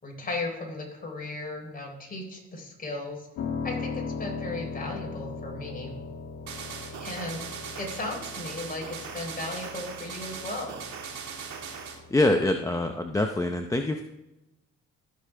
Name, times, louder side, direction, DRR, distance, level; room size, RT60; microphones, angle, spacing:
voice 1, 0.0-3.3 3.6-5.9 7.0-7.4 7.8-10.8, left 2 dB, 30° left, -1 dB, 3.7 m, -36 dB
Piano, 3.4-13.5, left 4 dB, 75° left, 1.4 m, -39 dB
sound 1, 6.5-12.0, right 6 dB, 65° right, 1.8 m, -39 dB
voice 2, 12.1-14.0, left 1 dB, 10° left, 4 dB, 0.7 m, -25 dB
15.0 x 6.7 x 3.4 m, 0.96 s
cardioid pair, 90°, 30 cm